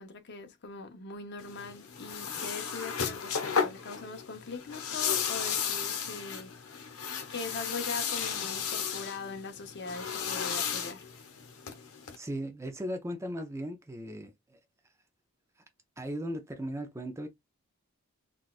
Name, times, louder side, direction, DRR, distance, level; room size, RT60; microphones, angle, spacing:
voice 1, 0.0-6.5 7.3-11.1, left 3 dB, 50° left, 0.7 m, -41 dB
sound 1, 1.4-12.2, left 7 dB, 85° left, 0.9 m, -34 dB
voice 2, 12.1-14.6 16.0-17.3, equal, 15° right, 0.4 m, -37 dB
3.9 x 2.3 x 2.3 m
head